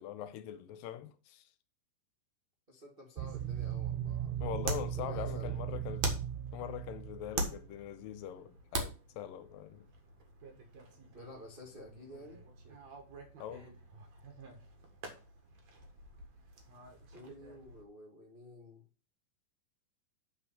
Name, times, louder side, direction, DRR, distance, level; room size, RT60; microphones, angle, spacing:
voice 1, 0.0-1.5 4.4-6.2 6.5-9.9 13.4-13.8, left 10 dB, 85° left, 2.3 m, -42 dB
voice 2, 2.7-4.5 4.9-5.8 11.1-12.4 17.1-18.8, left 1 dB, 40° right, 0.8 m, -51 dB
sound 1, 3.2-17.8, right 2 dB, 55° right, 2.6 m, -44 dB
sound 2, 3.2-7.8, right 11 dB, 85° right, 2.4 m, -38 dB
8.6 x 4.4 x 6.8 m
omnidirectional pair, 4.1 m